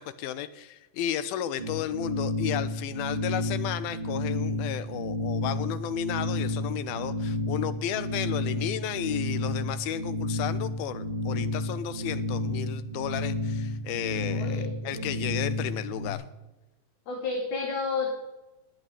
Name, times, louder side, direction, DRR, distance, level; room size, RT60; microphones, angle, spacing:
voice 1, 0.0-16.3, left 11 dB, 85° left, 14 dB, 2.8 m, -33 dB
sound 1, 1.6-16.1, left 1 dB, 15° right, 3.0 m, -31 dB
voice 2, 14.3-15.2 17.1-18.2, left 4 dB, 55° left, 1 dB, 3.5 m, -32 dB
18.0 x 7.9 x 9.8 m, 1.0 s
omnidirectional pair, 4.2 m